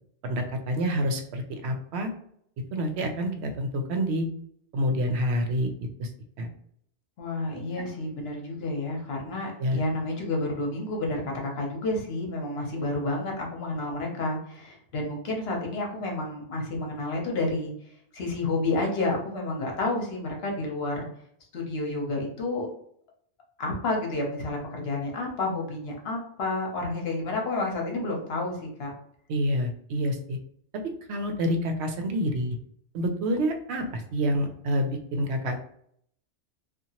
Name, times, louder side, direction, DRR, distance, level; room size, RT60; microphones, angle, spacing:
voice 1, 0.2-2.1 2.7-4.3 4.7-5.7 6.0-6.1 6.4-6.5 9.6-9.8 29.3-30.4 31.1-32.6 32.9-35.6, equal, 70° right, 5 dB, 0.8 m, -27 dB
voice 2, 7.2-17.7 18.1-21.1 21.5-22.7 23.6-28.9, left 2 dB, 60° left, 0 dB, 1.0 m, -30 dB
2.8 x 2.4 x 2.8 m, 0.66 s
omnidirectional pair, 1.2 m